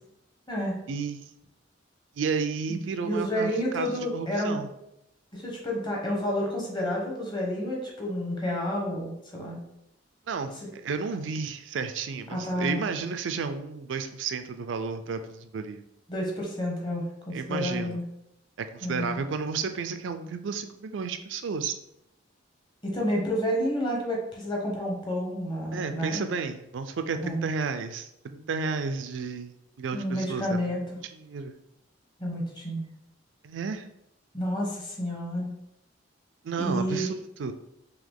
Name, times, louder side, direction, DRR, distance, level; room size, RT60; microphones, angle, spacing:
voice 1, 0.9-1.3 2.2-4.7 10.3-15.8 17.3-18.0 18.6-21.7 25.7-29.5 29.8-30.8 31.1-31.5 33.4-33.9 36.4-37.1 37.4-37.5, right 5 dB, 80° right, 8 dB, 0.4 m, -32 dB
voice 2, 3.0-4.6 5.3-9.6 12.3-12.8 16.1-18.0 18.8-19.2 22.8-26.2 27.2-27.4 29.9-30.8 32.2-32.9 34.3-35.5 36.6-37.1, equal, 25° left, -1 dB, 1.0 m, -30 dB
3.8 x 2.8 x 3.5 m, 0.82 s
head